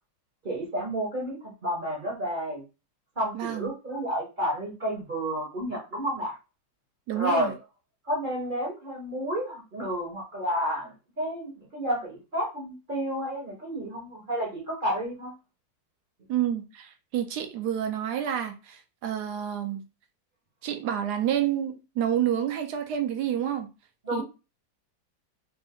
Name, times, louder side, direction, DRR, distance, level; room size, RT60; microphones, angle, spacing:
voice 1, 0.4-2.6 3.2-6.3 7.1-7.5 8.0-15.3 24.0-24.2, equal, 35° right, 0.9 m, -31 dB
voice 2, 3.3-3.7 7.1-7.5 16.3-19.8 20.6-23.7 24.1-24.2, right 10 dB, 70° right, 1.1 m, -29 dB
3.5 x 2.5 x 3.5 m
omnidirectional pair, 2.0 m